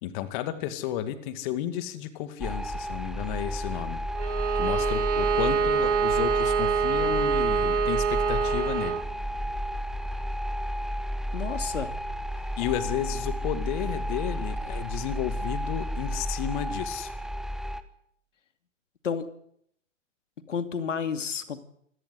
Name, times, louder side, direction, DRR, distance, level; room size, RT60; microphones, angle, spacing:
voice 1, 0.0-4.0 4.6-9.0 12.6-17.1, left 11 dB, 40° left, 11 dB, 2.1 m, -32 dB
sound 1, 2.4-17.8, equal, ahead, 1.2 m, -32 dB
Bowed string instrument, 4.1-9.1, right 6 dB, 65° right, 2.2 m, -25 dB
voice 2, 11.3-12.0 12.3-12.5 19.0-19.3 20.5-21.6, left 6 dB, 70° left, 9 dB, 2.6 m, -31 dB
26.5 x 16.5 x 8.0 m, 0.71 s
figure-of-eight pair, 120°, 38 cm